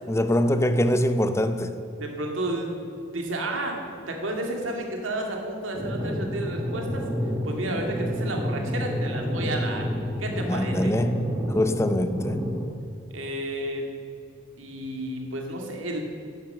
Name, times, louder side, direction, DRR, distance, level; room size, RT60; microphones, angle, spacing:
voice 1, 0.1-1.7 10.5-12.4, left 1 dB, 15° left, 9 dB, 0.6 m, -24 dB
voice 2, 2.0-2.8 3.1-3.8 4.1-7.0 7.4-9.9 10.2-10.9 13.1-13.9 14.6-16.0, right 1 dB, 85° right, 2 dB, 2.0 m, -31 dB
sound 1, 5.7-12.6, equal, 15° right, 1.9 m, -29 dB
11.5 x 9.3 x 6.5 m, 2.6 s
head